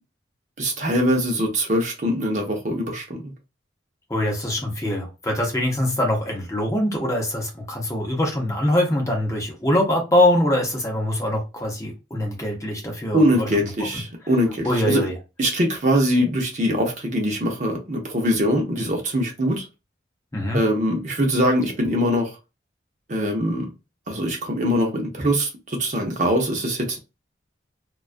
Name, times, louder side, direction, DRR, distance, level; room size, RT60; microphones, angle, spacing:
voice 1, 0.6-3.3 13.1-15.1 15.4-19.7 20.5-22.4 23.1-23.7 24.1-27.0, equal, 40° right, 0.6 m, -22 dB
voice 2, 4.1-13.5 14.6-15.1 20.3-20.6, left 1 dB, 15° left, 0.6 m, -23 dB
2.3 x 2.3 x 2.4 m
head